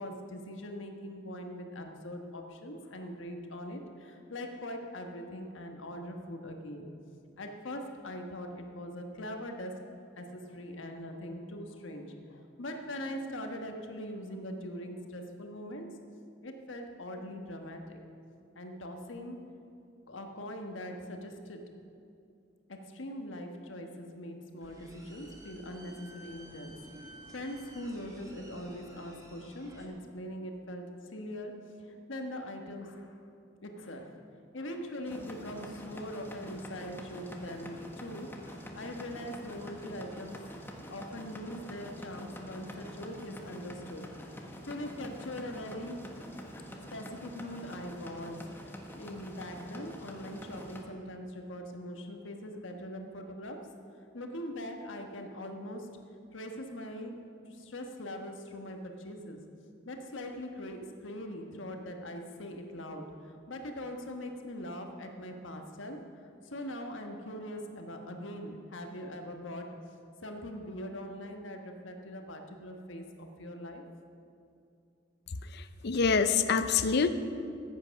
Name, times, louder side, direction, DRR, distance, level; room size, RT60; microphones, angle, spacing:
voice 1, 0.0-6.9 7.4-9.8 10.2-15.9 16.4-18.0 18.5-19.4 20.1-21.6 22.7-26.8 27.3-31.6 31.8-33.2 33.6-34.2 34.5-45.9 46.9-53.6 54.1-55.9 56.3-57.2 57.5-59.4 59.8-66.0 66.4-69.7 70.2-73.8, left 1 dB, 80° left, 4 dB, 1.3 m, -42 dB
sound 1, 24.6-29.9, right 1 dB, 20° right, 1.5 m, -52 dB
sound 2, 35.1-50.8, equal, 10° left, 1.1 m, -46 dB
voice 2, 75.5-77.1, left 5 dB, 55° left, 10 dB, 0.6 m, -26 dB
14.5 x 8.8 x 5.8 m, 2.5 s
head